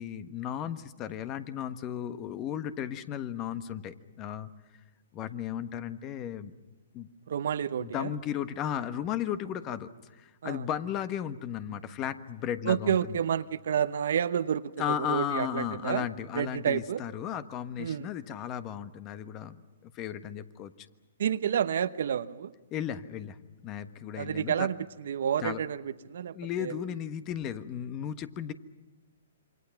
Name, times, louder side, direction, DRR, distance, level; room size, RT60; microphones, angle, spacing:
voice 1, 0.0-4.5 5.1-6.5 6.9-7.1 7.8-13.2 14.8-19.6 19.8-20.9 22.7-23.4 23.6-24.7 25.4-25.6 26.3-28.5, left 9 dB, 30° left, 12 dB, 1.3 m, -35 dB
voice 2, 7.3-8.1 10.4-10.7 12.7-16.1 16.3-17.0 17.8-18.1 21.2-22.5 24.2-26.7, right 8 dB, 65° right, 13 dB, 0.9 m, -30 dB
27.5 x 25.0 x 5.9 m, 1.2 s
hypercardioid pair, 130°, 0 cm